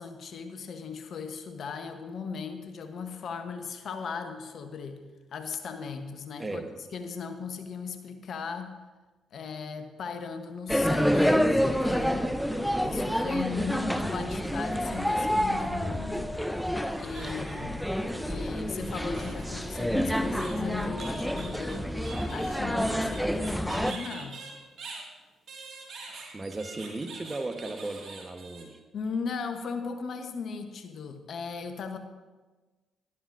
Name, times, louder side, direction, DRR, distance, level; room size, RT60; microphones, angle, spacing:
voice 1, 0.0-5.0 5.3-6.6 6.9-8.8 9.3-12.5 12.8-16.3 17.0-17.9 18.2-24.5 28.9-32.0, left 5 dB, 60° left, 7 dB, 1.0 m, -37 dB
voice 2, 6.4-6.7 26.3-28.8, right 2 dB, 25° right, 7 dB, 1.1 m, -36 dB
sound 1, 10.7-23.9, equal, ahead, 0.7 m, -28 dB
sound 2, 16.8-17.8 18.8-25.1 25.5-28.6, right 4 dB, 60° right, 2.1 m, -45 dB
12.0 x 12.0 x 2.6 m, 1.2 s
hypercardioid pair, 45°, 0 cm